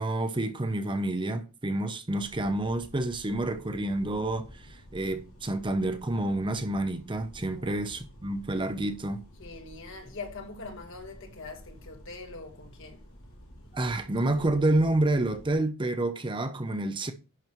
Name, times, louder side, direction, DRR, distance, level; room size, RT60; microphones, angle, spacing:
voice 1, 0.0-9.2 13.7-17.1, right 2 dB, 20° right, 0.7 m, -29 dB
sound 1, 2.1-15.5, equal, 80° left, 3.4 m, -51 dB
voice 2, 7.5-7.9 9.4-13.1, left 3 dB, 60° left, 1.9 m, -43 dB
11.0 x 4.7 x 4.6 m
head